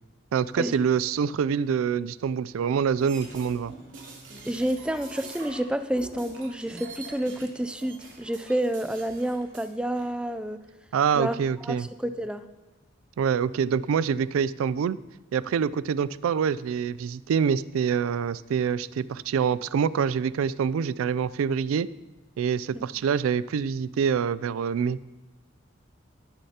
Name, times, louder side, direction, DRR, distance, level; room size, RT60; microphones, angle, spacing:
voice 1, 0.3-3.7 10.9-11.9 13.2-15.0 15.3-21.9 22.4-25.0, right 7 dB, 90° right, 18 dB, 0.3 m, -26 dB
sound 1, 3.0-5.7 5.9-9.7 10.0-10.1, right 3 dB, 65° right, 3.0 m, -44 dB
voice 2, 4.5-10.6 11.1-11.3 11.6-12.4 22.7-22.8, right 1 dB, 5° right, 11 dB, 0.3 m, -29 dB
19.0 x 6.6 x 2.8 m, 1.1 s
head